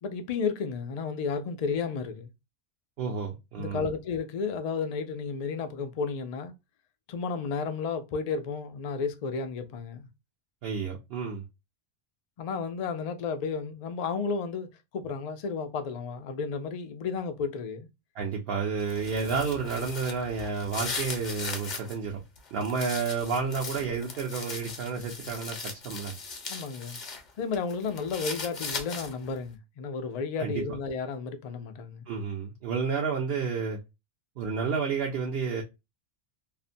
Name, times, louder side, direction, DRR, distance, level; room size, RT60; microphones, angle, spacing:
voice 1, 0.0-2.3 3.6-6.5 7.1-10.1 12.4-17.9 26.5-27.0 27.4-32.1, left 5 dB, 70° left, 0.3 m, -32 dB
voice 2, 3.0-3.9 10.6-11.4 18.1-22.2 22.5-26.1 30.4-30.8 32.1-33.8 34.4-35.6, right 5 dB, 65° right, 0.8 m, -31 dB
sound 1, 18.8-21.9 22.4-27.2 27.5-29.3, left 4 dB, 45° left, 0.7 m, -38 dB
2.6 x 2.1 x 2.5 m
omnidirectional pair, 1.2 m